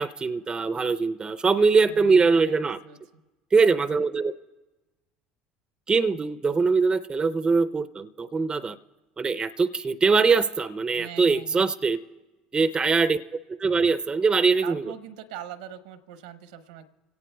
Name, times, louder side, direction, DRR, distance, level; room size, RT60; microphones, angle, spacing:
voice 1, 0.0-2.8 3.5-4.3 5.9-8.8 9.2-12.0 12.5-13.2 13.5-14.9, right 4 dB, 25° right, 13 dB, 0.4 m, -22 dB
voice 2, 1.8-3.0 10.9-11.7 14.6-16.8, right 10 dB, 80° right, 10 dB, 0.8 m, -42 dB
26.0 x 17.5 x 2.2 m, 1.1 s
hypercardioid pair, 70°, 4 cm